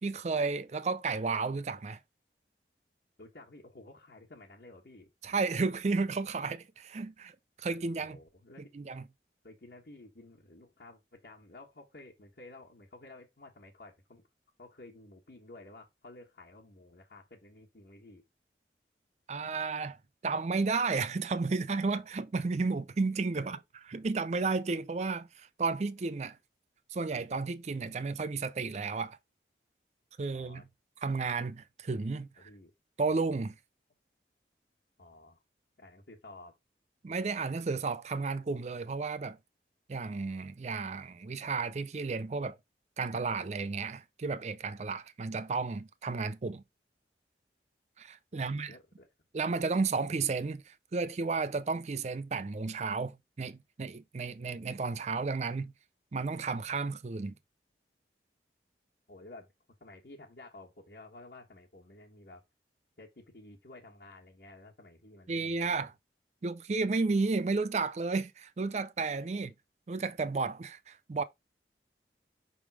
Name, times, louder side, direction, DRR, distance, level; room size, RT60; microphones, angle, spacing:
voice 1, 0.0-2.0 5.2-7.3 7.6-8.2 8.7-9.0 19.3-20.0 20.2-26.4 26.9-29.2 30.2-30.6 31.0-32.5 33.0-33.5 37.0-39.4 39.9-42.6 43.0-46.6 48.0-48.7 49.3-55.7 56.1-57.3 65.3-65.9 66.4-69.5 69.9-71.2, right 4 dB, 40° right, 0.4 m, -32 dB
voice 2, 3.2-5.1 8.0-8.7 9.4-14.2 14.6-18.2 23.3-23.6 30.3-30.7 32.4-32.7 35.0-35.4 35.8-36.6 48.3-49.1 59.1-59.5 59.8-62.4 63.0-65.9 69.3-69.4, left 2 dB, 60° left, 1.3 m, -53 dB
5.8 x 3.6 x 4.6 m
head